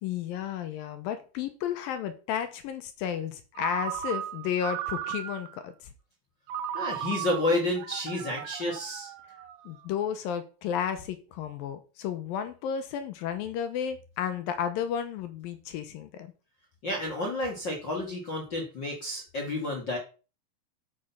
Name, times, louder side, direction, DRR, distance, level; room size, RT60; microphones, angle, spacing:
voice 1, 0.0-5.7 9.7-16.3, left 9 dB, 75° left, 9 dB, 2.5 m, -32 dB
Ringtone, 3.6-5.6 6.5-9.8, right 10 dB, 75° right, 2.4 m, -36 dB
voice 2, 6.7-9.1 16.8-20.0, left 1 dB, 40° left, 0 dB, 1.8 m, -30 dB
8.5 x 6.4 x 5.7 m, 0.34 s
omnidirectional pair, 4.5 m